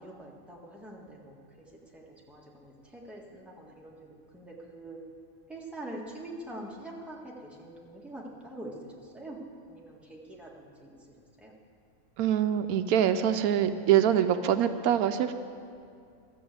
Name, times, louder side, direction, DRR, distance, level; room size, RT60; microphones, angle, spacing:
voice 1, 0.0-1.7 1.9-5.0 5.5-9.4 9.7-11.5, right 1 dB, ahead, -3 dB, 1.6 m, -45 dB
voice 2, 12.2-15.3, right 10 dB, 85° right, 10 dB, 1.1 m, -24 dB
13.5 x 7.2 x 7.7 m, 2.3 s
omnidirectional pair, 1.5 m